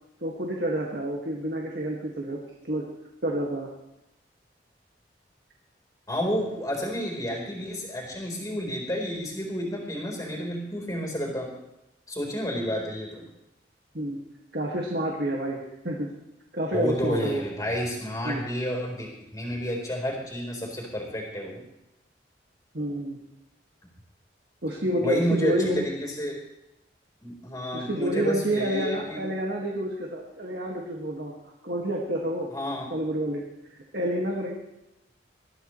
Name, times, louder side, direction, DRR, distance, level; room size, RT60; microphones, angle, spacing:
voice 1, 0.2-2.4 2.6-2.8 3.2-3.7 13.9-14.2 14.5-16.1 16.5-17.4 18.2-18.4 22.7-23.2 24.6-25.9 27.7-31.3 31.6-32.5 32.9-33.4 33.9-34.5, right 1 dB, 60° right, -1 dB, 1.9 m, -29 dB
voice 2, 6.1-11.5 12.1-13.2 16.7-21.6 25.0-26.4 27.2-29.2 32.5-32.9, equal, 20° left, -1 dB, 4.0 m, -30 dB
21.0 x 14.0 x 3.2 m, 0.89 s
head